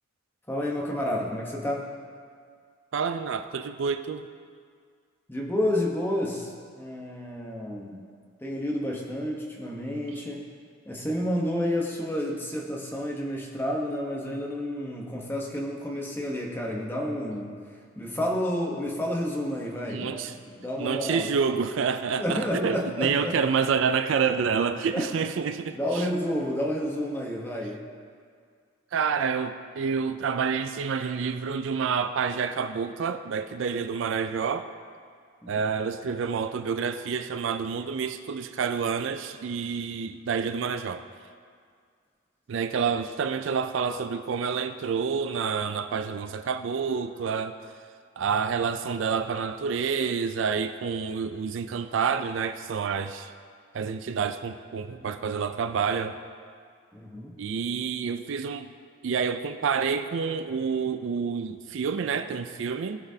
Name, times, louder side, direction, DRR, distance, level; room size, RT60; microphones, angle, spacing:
voice 1, 0.5-1.9 5.3-8.1 8.4-10.4 10.8-17.5 18.0-21.3 22.2-23.3 24.9-25.2 25.7-27.8 35.4-35.6 55.0-55.1 56.9-57.3, left 1 dB, 10° left, -2 dB, 1.0 m, -30 dB
voice 2, 2.9-4.3 19.9-20.3 20.8-26.0 28.9-34.7 35.5-41.0 42.5-47.5 48.2-53.3 53.7-56.2 57.4-58.7 59.0-63.0, right 6 dB, 65° right, 9 dB, 0.4 m, -28 dB
17.5 x 6.0 x 2.8 m, 2.1 s
head